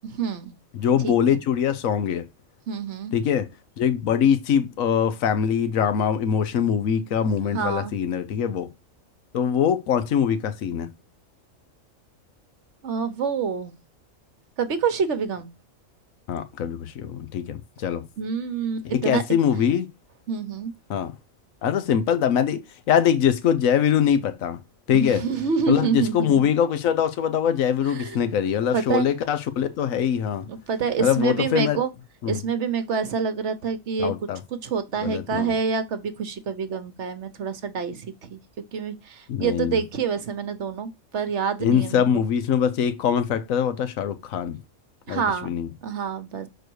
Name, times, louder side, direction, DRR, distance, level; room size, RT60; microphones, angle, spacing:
voice 1, 0.0-0.5 1.0-1.4 2.7-3.1 7.5-7.9 12.8-13.7 14.6-15.5 18.2-19.2 20.3-20.7 24.9-26.4 27.9-28.2 28.7-29.1 30.5-31.9 32.3-34.1 34.5-38.4 38.7-42.0 45.1-45.5 45.8-46.5, right 6 dB, 60° right, 1.2 m, -27 dB
voice 2, 0.7-2.2 3.1-3.5 3.8-8.7 9.3-10.9 16.3-18.0 18.9-19.9 20.9-21.1 21.6-24.6 24.9-25.2 25.7-30.4 31.0-31.8 32.2-32.4 34.0-34.4 35.0-35.5 39.3-39.8 41.6-44.6 45.1-45.7, left 8 dB, 75° left, 1.2 m, -23 dB
6.4 x 4.6 x 4.6 m
omnidirectional pair, 1.4 m